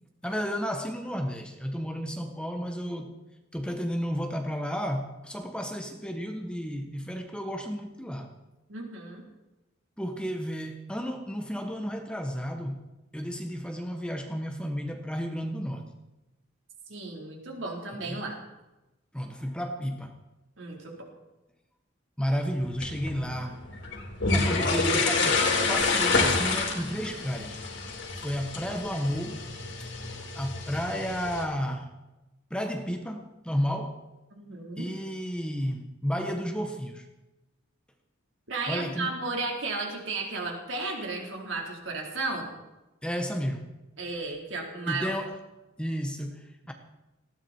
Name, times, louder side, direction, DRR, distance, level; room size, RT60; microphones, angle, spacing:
voice 1, 0.2-3.1 3.5-8.3 10.0-12.8 13.1-15.9 17.9-18.2 19.1-20.1 22.2-23.6 24.3-27.6 28.1-29.5 30.1-31.9 32.5-34.0 34.8-37.0 38.7-39.2 43.0-43.7 44.9-45.4 45.8-46.7, equal, 5° left, 4 dB, 1.2 m, -32 dB
voice 2, 8.7-9.2 16.9-18.4 20.6-21.0 34.3-34.9 38.5-42.5 44.0-45.1, right 3 dB, 60° right, 0 dB, 4.1 m, -34 dB
sound 1, 22.6-31.4, left 3 dB, 60° left, 3.8 m, -28 dB
19.5 x 16.5 x 4.5 m, 1.0 s
head